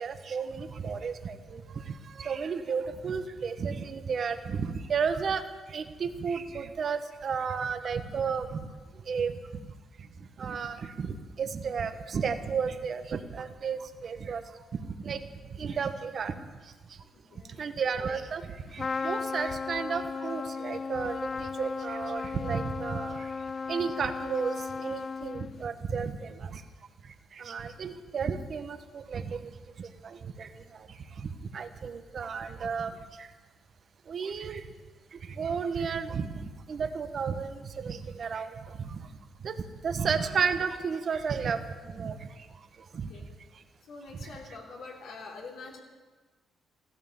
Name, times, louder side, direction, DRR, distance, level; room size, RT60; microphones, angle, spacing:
voice 1, 0.0-5.4 5.7-8.7 9.0-9.7 10.4-14.4 15.0-15.2 15.5-16.4 16.9-17.0 17.6-23.3 23.7-26.6 27.0-29.5 29.8-33.3 34.1-34.7 35.1-39.1 39.4-42.5 42.9-43.1 44.2-44.3, right 6 dB, 50° right, 8 dB, 1.3 m, -33 dB
voice 2, 17.1-17.6 42.9-43.3 43.8-45.8, left 3 dB, 75° left, -2 dB, 3.4 m, -46 dB
Trumpet, 18.8-25.7, left 5 dB, 40° left, 0.4 m, -35 dB
15.0 x 13.0 x 7.2 m, 1.4 s
cardioid pair, 90°, 0 cm